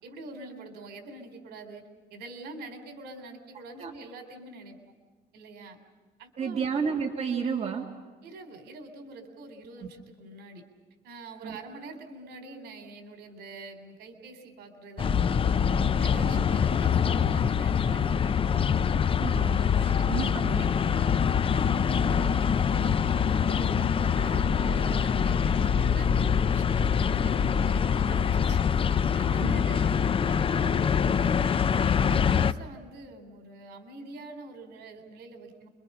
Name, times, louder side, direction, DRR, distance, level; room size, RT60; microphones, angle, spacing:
voice 1, 0.0-1.8 2.1-5.0 5.3-5.8 6.2-6.7 8.2-10.6 11.0-15.5 15.9-18.3 19.3-20.8 21.5-35.7, right 2 dB, 70° right, 6 dB, 3.9 m, -45 dB
voice 2, 6.4-7.9 11.4-11.6 19.2-19.6 20.1-21.1 29.4-29.6, right 6 dB, 40° right, 1 dB, 2.3 m, -31 dB
sound 1, 15.0-32.5, left 7 dB, 35° left, 0.7 m, -24 dB
29.0 x 24.0 x 5.7 m, 1.4 s
cardioid pair, 110°, 17 cm